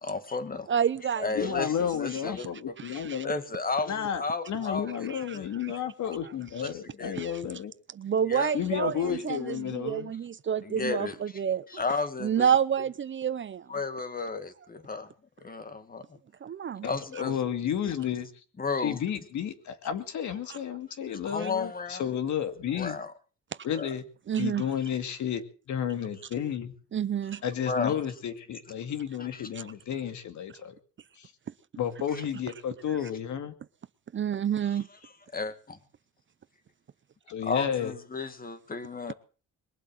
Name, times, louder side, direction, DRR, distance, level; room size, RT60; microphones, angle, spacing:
voice 1, 0.0-0.7 1.2-5.1 5.3-6.2 6.6-7.2 8.3-8.5 8.8-9.3 10.6-11.4 11.7-12.5 13.7-15.1 15.4-16.1 16.8-17.4 17.9-18.0 18.6-19.0 21.2-22.1 22.7-23.1 23.7-24.0 27.6-28.0 29.2-29.4 32.1-32.2 34.6-35.8 37.4-39.1, left 4 dB, 30° left, 2.2 m, -34 dB
voice 2, 0.7-1.6 2.4-2.5 2.8-3.2 5.1-5.4 7.1-7.4 7.9-11.7 12.2-13.7 16.4-16.9 20.5-20.6 21.4-21.5 24.3-24.7 26.9-27.4 29.5-29.6 34.1-34.9, right 8 dB, 40° right, 0.7 m, -29 dB
voice 3, 1.4-3.3 3.9-7.7 8.5-10.1 16.8-18.3 18.8-23.0 23.6-24.1 24.4-25.4 25.7-26.8 27.4-30.8 31.2-31.3 31.8-33.5 37.3-37.9, left 9 dB, 75° left, 2.4 m, -32 dB
22.0 x 8.0 x 7.8 m
cardioid pair, 90°, 30 cm